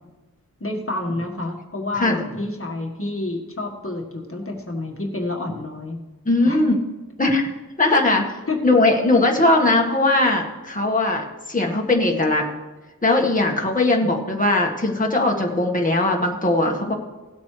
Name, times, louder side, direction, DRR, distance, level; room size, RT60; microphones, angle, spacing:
voice 1, 0.6-6.0 6.4-6.6 8.5-8.6 14.0-14.1, left 2 dB, 40° left, 1 dB, 1.7 m, -29 dB
voice 2, 6.2-6.8 7.2-7.4 7.8-8.3 8.6-12.5 13.0-16.9, left 2 dB, 25° left, 0 dB, 1.7 m, -19 dB
17.5 x 8.3 x 3.3 m, 1.2 s
wide cardioid pair, 65°, 35 cm